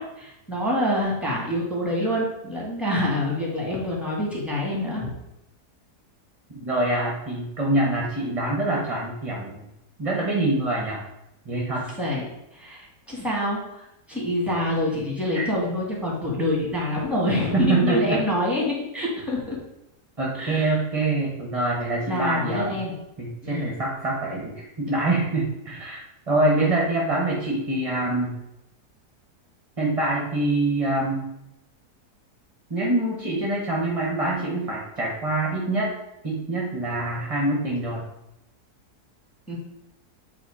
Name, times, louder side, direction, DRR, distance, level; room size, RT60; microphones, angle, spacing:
voice 1, 0.0-5.1 12.0-12.3 12.5-19.6 20.3-20.8 22.1-22.9 23.4-23.7 39.5-39.6, left 1 dB, ahead, -3 dB, 2.0 m, -26 dB
voice 2, 6.6-9.6 10.0-11.0 11.4-11.9 15.3-15.4 17.5-18.2 20.2-22.8 23.2-28.4 29.8-31.3 32.7-35.9 36.2-38.0, right 2 dB, 25° right, -3 dB, 1.1 m, -25 dB
8.1 x 3.1 x 4.8 m, 0.87 s
omnidirectional pair, 1.7 m